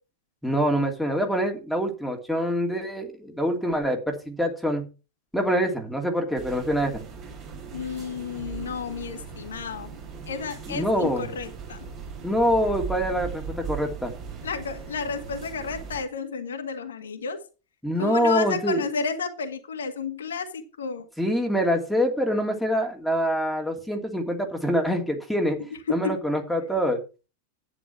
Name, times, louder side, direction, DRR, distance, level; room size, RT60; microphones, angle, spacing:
voice 1, 0.4-4.9 5.3-7.0 10.7-11.3 12.2-14.1 17.8-18.8 21.2-25.6 25.9-27.0, equal, ahead, 1 dB, 2.8 m, -25 dB
sound 1, 6.3-16.0, right 5 dB, 35° right, 5.3 m, -38 dB
voice 2, 7.7-10.0 10.3-11.8 14.4-17.4 18.0-21.1 25.9-26.2, left 5 dB, 65° left, 5 dB, 1.9 m, -31 dB
11.0 x 9.5 x 4.6 m, 0.32 s
figure-of-eight pair, 90°, 0 cm